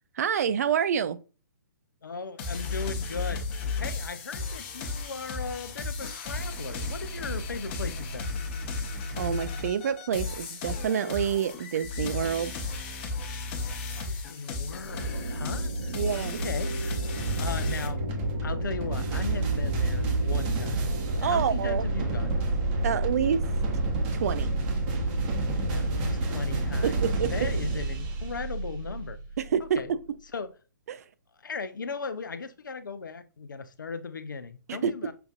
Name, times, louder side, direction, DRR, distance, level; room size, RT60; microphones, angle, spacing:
voice 1, 0.2-1.2 9.2-12.7 15.9-16.4 21.2-21.8 22.8-23.4 24.1-24.5 26.8-27.5 29.4-30.0 30.9-31.0 34.7-34.9, right 8 dB, 50° right, 0.4 m, -28 dB
voice 2, 2.0-3.5 3.8-8.3 14.0-17.0 17.4-18.0 18.4-20.8 21.2-22.4 25.5-29.2 29.6-29.9 30.3-30.5 31.4-35.1, left 4 dB, 75° left, 0.5 m, -37 dB
sound 1, 2.4-17.9, left 3 dB, 35° left, 0.9 m, -34 dB
sound 2, 14.9-27.8, right 1 dB, 75° right, 1.3 m, -34 dB
sound 3, 17.2-29.3, right 2 dB, 30° right, 0.8 m, -30 dB
5.7 x 2.5 x 2.3 m
figure-of-eight pair, 130°, 11 cm